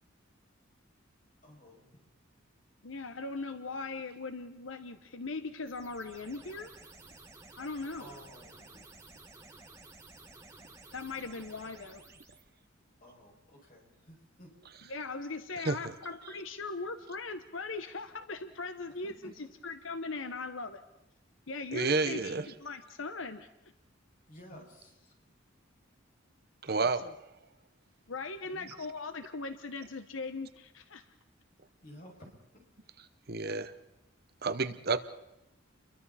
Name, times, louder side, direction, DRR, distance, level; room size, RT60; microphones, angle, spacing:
voice 1, 1.4-1.9 8.0-8.8 13.0-14.5 19.0-19.3 21.7-22.3 24.3-25.1 28.2-28.7 31.8-32.1, equal, 45° left, 6.7 m, -53 dB
voice 2, 2.8-6.7 7.6-8.1 10.9-12.0 14.9-20.8 21.5-23.5 26.7-27.1 28.1-31.1, left 3 dB, 80° left, 1.1 m, -39 dB
sound 1, 5.6-12.4, right 2 dB, 15° right, 2.1 m, -54 dB
voice 3, 21.7-22.4 26.6-27.1 33.3-33.7 34.4-35.0, right 4 dB, 50° right, 1.0 m, -30 dB
30.0 x 23.0 x 4.2 m
head